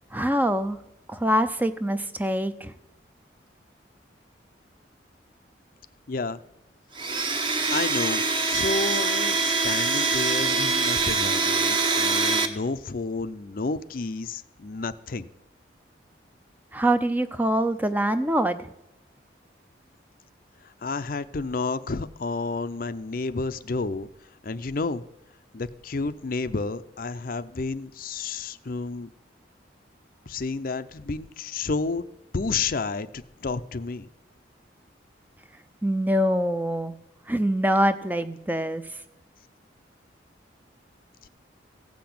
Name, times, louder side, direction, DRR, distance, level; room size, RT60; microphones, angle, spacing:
voice 1, 0.1-0.8 1.1-2.7 16.7-18.7 35.8-37.0 37.3-38.9, equal, 10° right, 10 dB, 0.5 m, -24 dB
voice 2, 6.1-6.4 7.7-15.3 20.6-24.1 24.4-25.0 25.5-29.1 30.3-32.0 32.3-34.1 41.2-41.3, left 3 dB, 50° left, 12 dB, 0.5 m, -31 dB
Domestic sounds home sounds, 6.9-12.5, right 4 dB, 25° right, 0.9 m, -24 dB
15.5 x 5.9 x 8.5 m, 0.92 s
head